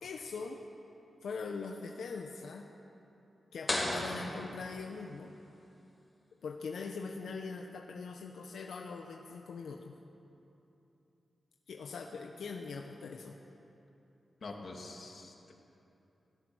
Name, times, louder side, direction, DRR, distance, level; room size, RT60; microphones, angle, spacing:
voice 1, 0.0-0.7 1.2-2.7 3.5-5.3 6.4-9.9 11.7-13.4, left 4 dB, 85° left, 2 dB, 1.2 m, -42 dB
sound 1, 3.7-5.3, left 1 dB, 25° left, 4.3 m, -36 dB
voice 2, 14.4-15.5, left 3 dB, 50° left, 0 dB, 2.9 m, -45 dB
25.5 x 17.0 x 6.5 m, 2.9 s
wide cardioid pair, 140°, 0 cm